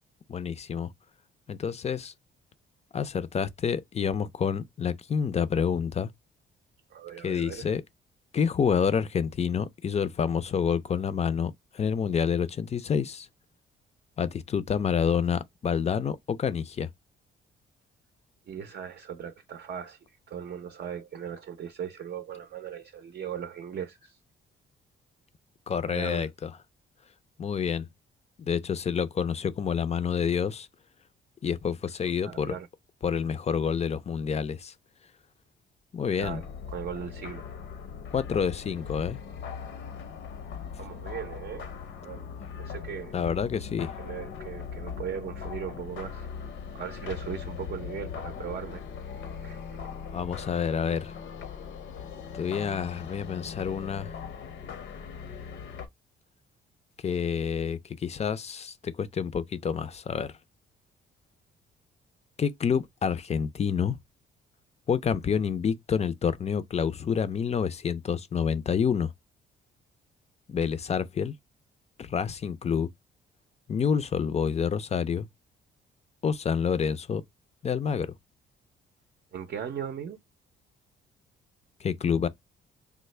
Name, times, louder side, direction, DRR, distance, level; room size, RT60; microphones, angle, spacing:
voice 1, 0.3-0.9 1.5-2.1 2.9-6.1 7.2-7.8 8.3-13.3 14.2-16.9 25.7-26.5 27.4-27.9 28.4-30.7 31.4-32.5 33.0-34.7 35.9-36.4 38.1-39.2 42.4-42.5 43.1-43.9 49.9-51.1 52.3-54.1 57.0-60.3 62.4-64.0 64.9-69.1 70.5-71.3 72.0-72.9 73.7-75.3 76.2-77.2 77.6-78.1 81.8-82.3, left 7 dB, 35° left, 0.4 m, -28 dB
voice 2, 6.9-7.7 18.5-24.2 25.9-26.3 32.2-32.7 36.2-37.4 40.8-41.7 42.0-42.3 42.6-43.2 44.0-46.3 46.7-48.8 49.4-49.9 79.3-80.2, right 8 dB, 55° right, 0.6 m, -38 dB
sound 1, 36.2-55.9, left 7 dB, 70° left, 0.7 m, -40 dB
3.3 x 2.1 x 3.2 m
cardioid pair, 90°, 20 cm